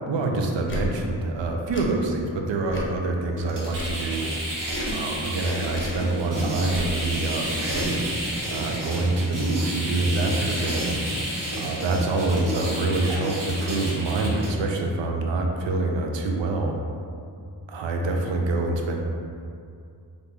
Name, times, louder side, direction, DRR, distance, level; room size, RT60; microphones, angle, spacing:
voice 1, 0.1-4.4 4.9-8.0 8.5-10.9 11.5-16.8 17.7-19.0, right 2 dB, 80° right, 1 dB, 0.5 m, -26 dB
Tick / Tick-tock, 0.6-0.9 1.7-1.9 2.7-3.0 3.7-4.0 4.7-5.0 5.7-6.0 6.7-6.9 7.7-7.9, left 1 dB, 30° left, 0.6 m, -34 dB
sound 1, 3.4-14.5, right 1 dB, 45° right, 0.9 m, -30 dB
3.4 x 2.5 x 2.9 m, 2.4 s
cardioid pair, 45°, 44 cm